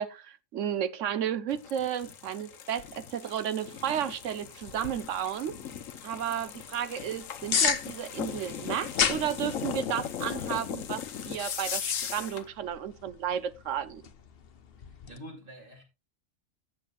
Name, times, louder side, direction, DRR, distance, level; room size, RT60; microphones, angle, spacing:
voice 1, 0.0-5.6 6.0-14.1, right 9 dB, 70° right, 1.1 m, -33 dB
sound 1, 1.5-12.5, left 8 dB, 80° left, 1.2 m, -38 dB
sound 2, 4.6-15.2, left 7 dB, 50° left, 0.9 m, -36 dB
voice 2, 14.8-15.8, equal, 40° right, 2.9 m, -47 dB
16.0 x 6.5 x 2.3 m
omnidirectional pair, 1.4 m